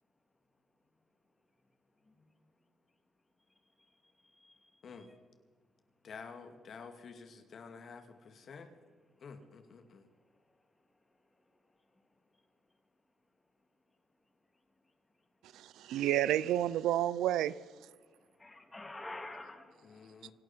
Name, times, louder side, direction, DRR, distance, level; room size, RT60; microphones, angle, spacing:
voice 1, 3.9-5.2 18.1-20.3, left 2 dB, 20° left, 2.9 m, -50 dB
voice 2, 6.0-8.7 9.2-10.1 19.8-20.3, left 5 dB, 55° left, 2.3 m, -50 dB
voice 3, 15.5-17.5, right 12 dB, 85° right, 0.5 m, -30 dB
26.5 x 11.5 x 4.5 m
cardioid pair, 90°, 0 cm